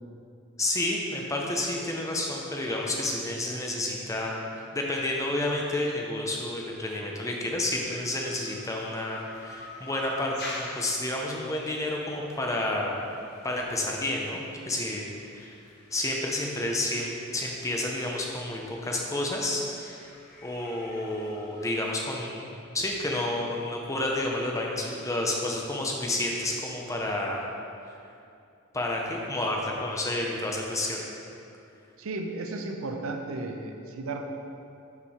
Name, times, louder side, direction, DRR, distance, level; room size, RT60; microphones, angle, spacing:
voice 1, 0.6-4.4 4.7-13.1 13.4-15.1 15.3-15.5 15.9-20.1 20.4-27.5 28.7-31.0, left 1 dB, 15° left, -1 dB, 0.6 m, -30 dB
sound 1, 7.8-21.9, left 1 dB, 50° left, 1.1 m, -47 dB
voice 2, 32.0-34.3, right 2 dB, 65° right, 4 dB, 0.5 m, -34 dB
5.8 x 4.5 x 4.7 m, 2.6 s
head